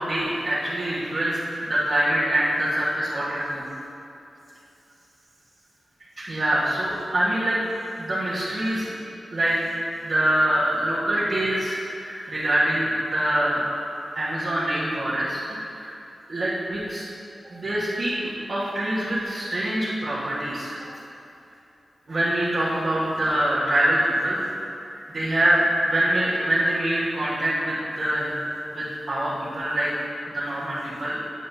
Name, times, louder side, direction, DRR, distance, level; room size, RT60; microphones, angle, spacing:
voice 1, 0.0-3.6 6.2-7.6 8.0-8.8 9.3-9.6 10.0-13.6 14.1-15.9 16.3-17.0 17.4-20.8 22.1-24.4 25.1-28.3 28.7-29.9 30.3-31.2, right 1 dB, 55° right, -11 dB, 1.5 m, -24 dB
9.4 x 7.4 x 2.8 m, 2.8 s
wide cardioid pair, 80°, 0 cm